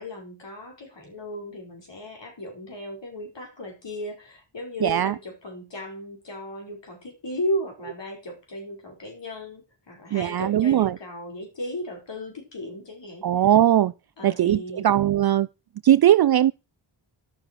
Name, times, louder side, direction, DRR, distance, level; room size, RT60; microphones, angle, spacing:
voice 1, 0.0-13.3 14.2-14.9, equal, 65° left, 5.1 m, -35 dB
voice 2, 4.8-5.2 10.1-11.0 13.2-13.9 14.2-15.5 15.8-16.5, right 11 dB, 55° right, 0.5 m, -19 dB
11.5 x 6.9 x 6.0 m
cardioid pair, 65°, 47 cm